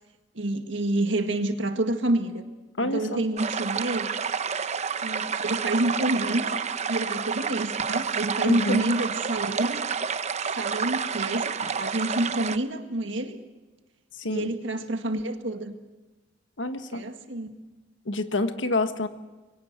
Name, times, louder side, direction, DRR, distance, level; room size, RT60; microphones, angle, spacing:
voice 1, 0.4-2.4 2.8-4.1 5.0-6.6 6.9-9.8 10.5-13.4 14.3-15.8 16.9-17.5, right 1 dB, 80° right, 7 dB, 1.8 m, -28 dB
voice 2, 2.8-3.2 8.4-8.8 11.6-11.7 14.2-14.5 16.6-17.0 18.0-19.1, left 2 dB, 80° left, 9 dB, 1.5 m, -28 dB
sound 1, 3.4-12.6, right 6 dB, 40° right, 0.7 m, -29 dB
23.0 x 18.0 x 8.1 m, 1.2 s
head